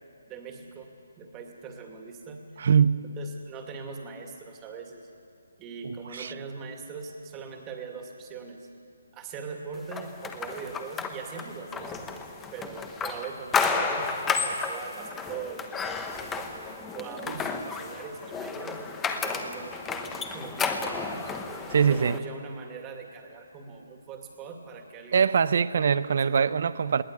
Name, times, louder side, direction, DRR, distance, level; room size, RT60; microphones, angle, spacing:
voice 1, 0.3-0.9 1.2-2.6 3.2-5.1 5.6-8.7 9.1-12.0 12.5-16.5 16.9-18.8 19.2-21.3 21.9-25.3 25.8-26.5, right 5 dB, 20° right, 3 dB, 2.3 m, -41 dB
voice 2, 2.6-3.1 5.8-6.3 17.3-17.4 21.7-22.2 25.1-27.0, right 7 dB, 55° right, 16 dB, 0.7 m, -23 dB
sound 1, 9.9-22.2, left 5 dB, 10° left, 1.1 m, -32 dB
21.0 x 16.5 x 9.9 m, 2.5 s
hypercardioid pair, 160°, 0 cm